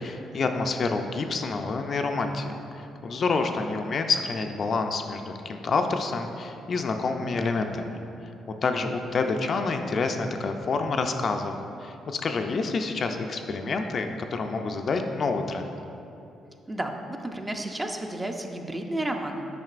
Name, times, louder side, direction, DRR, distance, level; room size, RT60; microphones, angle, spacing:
voice 1, 0.0-8.0 8.6-11.5 11.8-15.7, left 4 dB, 50° left, 5 dB, 0.3 m, -28 dB
voice 2, 16.7-19.5, right 1 dB, 15° right, 4 dB, 0.5 m, -32 dB
7.5 x 5.2 x 2.5 m, 2.7 s
cardioid pair, 90°, 0 cm